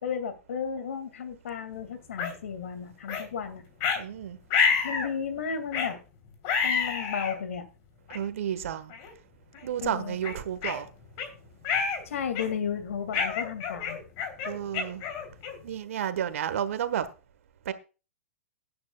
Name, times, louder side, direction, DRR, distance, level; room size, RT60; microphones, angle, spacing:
voice 1, 0.0-3.6 4.8-6.0 6.6-7.7 9.8-10.2 12.1-14.0, left 7 dB, 70° left, 2.3 m, -33 dB
sound 1, 2.2-2.3 3.1-3.3 3.8-4.0 4.5-5.1 5.7-6.0 6.4-7.4 8.1-8.2 8.9-9.1 9.5-9.7 10.2-11.3 11.6-12.0 12.3-12.7 13.1-15.7, left 6 dB, 45° left, 3.7 m, -28 dB
voice 2, 4.0-4.4 8.1-8.9 9.6-10.9 14.4-15.0 15.6-17.1 17.6-17.7, right 9 dB, 70° right, 1.5 m, -31 dB
19.0 x 9.6 x 2.3 m
hypercardioid pair, 115°, 8 cm